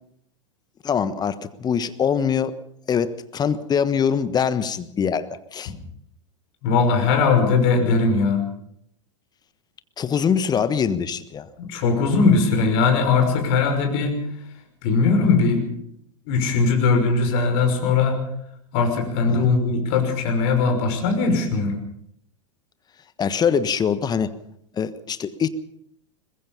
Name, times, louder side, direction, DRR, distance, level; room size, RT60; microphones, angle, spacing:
voice 1, 0.8-2.5 2.9-5.7 10.0-11.5 19.3-19.5 23.2-24.3 24.8-25.5, left 7 dB, 25° left, 14 dB, 1.4 m, -23 dB
voice 2, 6.6-8.4 11.6-14.2 14.8-15.7 16.3-18.2 18.7-21.7, left 4 dB, 50° left, 4 dB, 5.9 m, -20 dB
22.5 x 21.0 x 5.6 m, 0.71 s
figure-of-eight pair, 90°, 17 cm